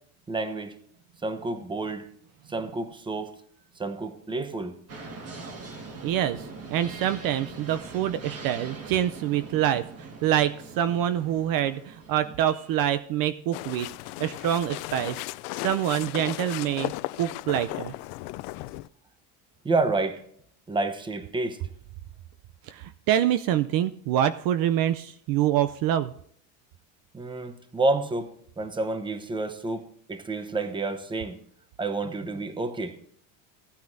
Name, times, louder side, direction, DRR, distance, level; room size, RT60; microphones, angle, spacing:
voice 1, 0.3-0.8 1.2-2.1 2.5-3.3 3.8-4.8 19.6-20.2 20.7-21.6 27.1-31.4 31.8-33.0, right 2 dB, 10° right, 9 dB, 0.9 m, -29 dB
sound 1, 4.9-12.9, right 3 dB, 35° right, 1.7 m, -42 dB
voice 2, 6.0-13.9 14.2-15.2 15.5-16.9 17.2-17.9 22.6-26.1, right 11 dB, 50° right, 12 dB, 0.5 m, -26 dB
sound 2, 13.5-18.9, left 20 dB, 85° left, 0.5 m, -35 dB
16.5 x 9.2 x 2.6 m, 0.65 s
cardioid pair, 145°, 44 cm